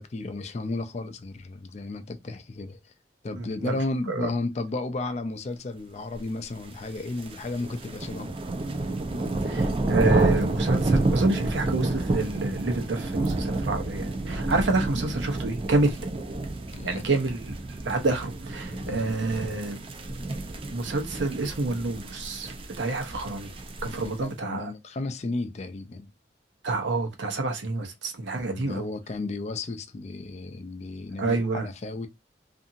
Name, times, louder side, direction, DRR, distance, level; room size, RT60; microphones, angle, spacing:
voice 1, 0.0-2.9 3.2-8.4 16.7-17.0 18.7-19.0 24.0-26.1 28.3-32.1, left 2 dB, 35° left, 0.4 m, -33 dB
voice 2, 3.3-3.8 4.1-4.3 9.4-16.1 16.8-17.5 17.8-19.8 20.7-23.5 23.8-24.7 26.6-28.9 31.2-31.7, right 3 dB, 85° right, 0.7 m, -28 dB
sound 1, 6.7-24.2, right 2 dB, 30° right, 0.4 m, -29 dB
2.7 x 2.5 x 2.5 m
head